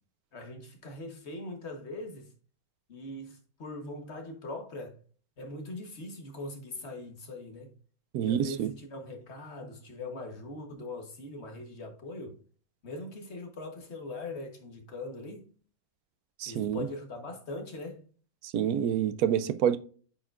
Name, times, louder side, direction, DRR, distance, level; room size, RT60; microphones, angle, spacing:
voice 1, 0.3-2.3 2.9-5.0 5.4-7.7 8.2-12.4 12.8-15.4 16.4-18.0, left 2 dB, 50° left, 1.5 m, -41 dB
voice 2, 8.1-8.7 16.4-16.9 18.4-19.8, right 9 dB, 85° right, 1.1 m, -27 dB
8.7 x 4.8 x 2.5 m
omnidirectional pair, 1.5 m